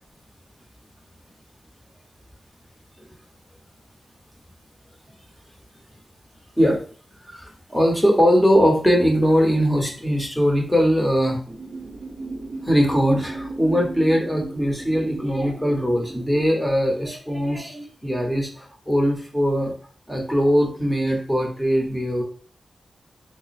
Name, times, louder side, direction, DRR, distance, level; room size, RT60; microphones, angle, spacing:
voice 1, 7.3-11.4 12.6-19.7 20.1-22.2, equal, ahead, 1 dB, 1.0 m, -21 dB
sound 1, 11.5-16.5, right 2 dB, 35° right, 0.7 m, -35 dB
3.5 x 2.0 x 4.1 m, 0.41 s
wide cardioid pair, 115°, 0 cm